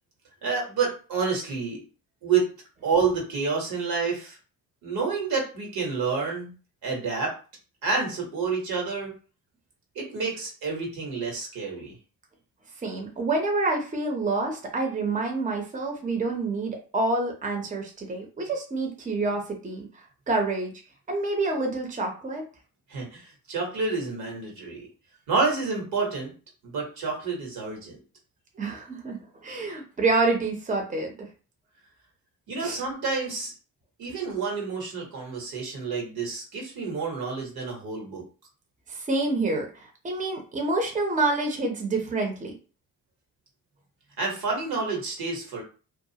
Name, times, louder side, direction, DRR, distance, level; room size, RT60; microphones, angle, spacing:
voice 1, 0.4-1.8 2.2-2.5 2.8-4.4 4.8-6.5 6.8-7.3 7.8-9.1 9.9-11.9 22.9-24.9 25.3-26.3 26.6-28.0 32.5-33.5 34.0-38.2 44.2-45.6, right 4 dB, 80° right, 0 dB, 1.2 m, -29 dB
voice 2, 12.8-19.9 20.3-20.7 21.1-22.4 28.6-31.1 32.6-32.8 38.9-42.5, right 3 dB, 20° right, 2 dB, 0.7 m, -27 dB
2.4 x 2.4 x 2.8 m, 0.36 s
cardioid pair, 80°, 36 cm